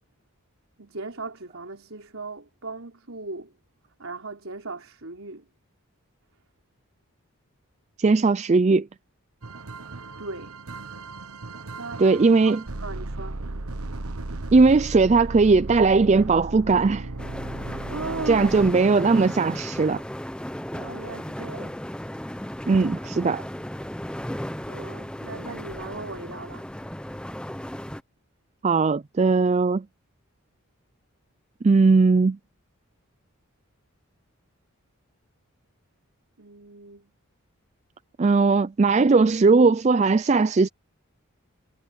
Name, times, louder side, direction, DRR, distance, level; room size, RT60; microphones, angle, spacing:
voice 1, 0.8-3.5 4.0-5.5 10.2-10.6 11.8-13.4 17.9-18.5 20.7-21.8 24.7-26.7 36.4-37.1, right 3 dB, 70° right, 4.1 m, -38 dB
voice 2, 8.0-8.9 12.0-12.6 14.5-17.1 18.3-20.0 22.7-23.4 28.6-29.8 31.6-32.4 38.2-40.7, right 4 dB, 30° right, 0.4 m, -19 dB
sound 1, 9.4-19.2 20.7-20.9 21.4-21.5, right 2 dB, 90° right, 1.2 m, -36 dB
wind and waves ambience, 17.2-28.0, equal, 5° left, 0.7 m, -35 dB
head